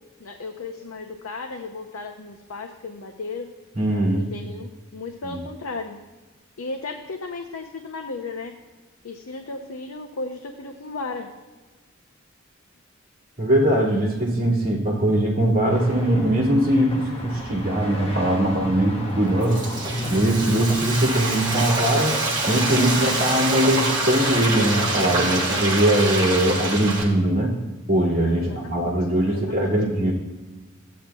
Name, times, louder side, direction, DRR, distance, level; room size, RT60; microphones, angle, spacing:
voice 1, 0.2-3.5 4.2-6.0 6.6-8.6 9.0-11.3 28.3-29.0 29.2-29.8, left 3 dB, 90° left, 4 dB, 0.6 m, -35 dB
voice 2, 3.8-4.3 5.3-5.4 13.4-19.6 20.1-22.2 22.5-27.5 27.9-30.1, right 1 dB, 45° right, -6 dB, 1.9 m, -21 dB
sound 1, 15.7-25.5, equal, 30° left, 1.2 m, -33 dB
Frying (food), 19.2-27.0, right 2 dB, 20° right, 1.5 m, -26 dB
13.5 x 8.5 x 2.3 m, 1.3 s
head